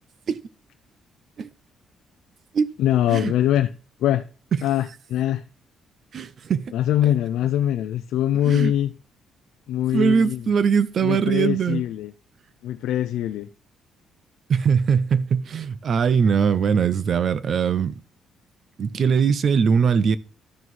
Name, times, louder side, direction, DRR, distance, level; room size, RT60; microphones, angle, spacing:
voice 1, 2.8-3.7 4.0-4.3 4.6-5.4 6.7-8.9 9.7-10.6 11.0-12.1 12.6-13.5, left 12 dB, 85° left, 0.4 m, -23 dB
voice 2, 6.1-6.7 7.0-7.1 8.5-8.7 9.9-11.8 14.5-18.0 18.8-20.2, right 6 dB, 40° right, 0.4 m, -21 dB
12.5 x 4.6 x 4.0 m
cardioid pair, 170°, 0 cm